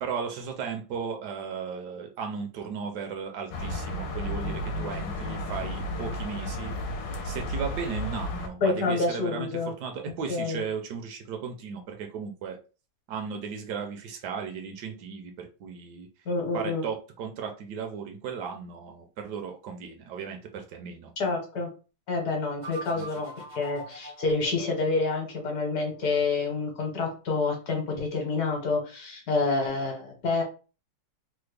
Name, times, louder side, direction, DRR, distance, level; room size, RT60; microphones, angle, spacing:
voice 1, 0.0-6.7 7.2-12.6 13.1-16.1 16.5-21.1 22.9-23.1, right 6 dB, 75° right, 4 dB, 1.1 m, -36 dB
sound 1, 3.5-8.5, left 1 dB, 85° left, 1.3 m, -33 dB
voice 2, 8.6-9.7 10.3-10.6 16.3-16.8 21.2-21.7 22.1-30.4, left 3 dB, 65° left, 2 dB, 1.3 m, -28 dB
sound 2, 22.6-25.5, right 1 dB, 45° right, 0.6 m, -43 dB
3.3 x 2.0 x 3.2 m, 0.34 s
omnidirectional pair, 1.9 m